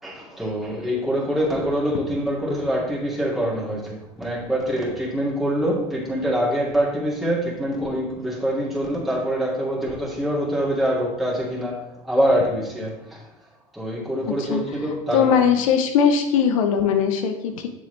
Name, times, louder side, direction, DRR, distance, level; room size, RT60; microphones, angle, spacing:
voice 1, 0.0-13.2 13.7-15.4, equal, ahead, -6 dB, 2.5 m, -25 dB
voice 2, 15.1-17.7, left 7 dB, 75° left, 6 dB, 0.8 m, -19 dB
7.0 x 6.3 x 3.3 m, 0.92 s
hypercardioid pair, 80°, 17 cm